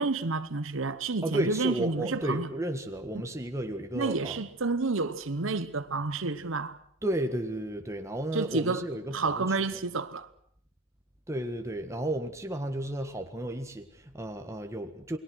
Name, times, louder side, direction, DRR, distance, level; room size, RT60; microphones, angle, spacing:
voice 1, 0.0-2.5 3.9-6.8 8.3-8.9 9.1-10.3, right 3 dB, 85° right, 1.0 m, -30 dB
voice 2, 1.2-4.4 7.0-9.7 11.3-15.2, right 1 dB, 15° right, 1.6 m, -33 dB
28.5 x 20.5 x 6.3 m
head